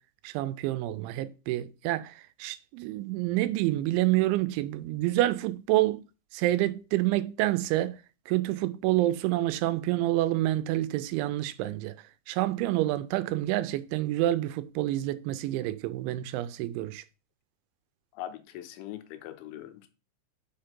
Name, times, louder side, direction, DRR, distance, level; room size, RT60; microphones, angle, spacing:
voice 1, 0.2-6.0 6.3-8.0 8.3-11.9 12.3-17.0, right 15 dB, 85° right, 3.0 m, -28 dB
voice 2, 18.1-19.9, left 12 dB, 85° left, 3.2 m, -41 dB
5.7 x 5.6 x 5.2 m
omnidirectional pair, 5.3 m